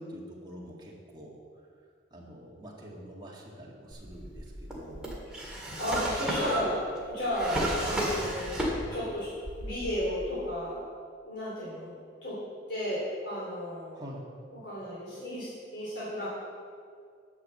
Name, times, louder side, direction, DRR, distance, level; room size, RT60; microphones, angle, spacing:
voice 1, 0.0-1.4 2.1-5.1 13.9-14.2, equal, 20° right, -4 dB, 1.9 m, -45 dB
Drawer open or close, 3.9-9.1 9.4-10.2, right 1 dB, 5° right, 1.9 m, -33 dB
voice 2, 5.8-10.8 11.2-12.4 12.7-16.3, equal, 65° left, -9 dB, 3.2 m, -34 dB
10.5 x 6.3 x 7.6 m, 2.1 s
head